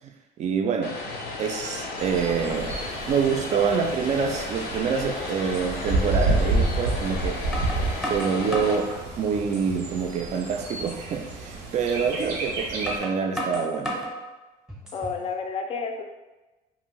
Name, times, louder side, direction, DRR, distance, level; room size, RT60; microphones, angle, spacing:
voice 1, 0.4-1.0 1.4-2.8 3.1-7.4 8.0-14.0, right 6 dB, 45° right, 4 dB, 0.4 m, -26 dB
Vehicle, 0.8-8.8, left 2 dB, 80° left, 0.6 m, -34 dB
Bird, 2.0-13.0, right 2 dB, 85° right, 0.6 m, -30 dB
sound 1, 5.5-5.7 6.9-7.0 7.5-8.8 9.4-9.9 10.3-10.4 10.9-11.0 12.2-12.3 12.9-14.2 14.7-15.2, equal, 5° right, 0.7 m, -33 dB
voice 2, 14.9-16.0, left 5 dB, 35° left, 4 dB, 0.4 m, -30 dB
2.7 x 2.5 x 3.0 m, 1.1 s
cardioid pair, 125°, 17 cm